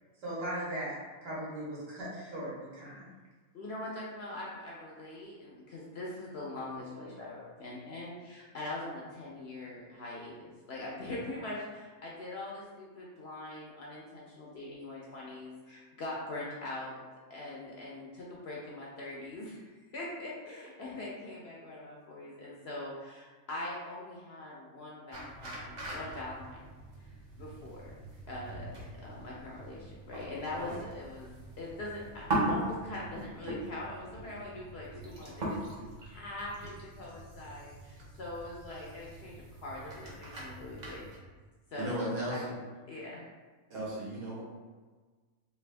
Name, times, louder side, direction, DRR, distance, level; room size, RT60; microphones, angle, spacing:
voice 1, 0.2-3.1, right 1 dB, 60° right, -7 dB, 1.6 m, -38 dB
voice 2, 3.5-17.0 17.3-26.7 27.4-28.0 28.3-28.7 29.0-35.6 36.0-39.4 39.6-41.1 41.7-42.0 42.3-42.5 42.9-43.3, left 2 dB, 60° left, -4 dB, 0.7 m, -42 dB
sound 1, 25.1-41.2, right 1 dB, 40° right, 0.7 m, -40 dB
voice 3, 41.7-42.5 43.7-44.4, right 1 dB, 85° right, -6 dB, 1.5 m, -35 dB
3.4 x 2.6 x 3.3 m, 1.4 s
omnidirectional pair, 1.5 m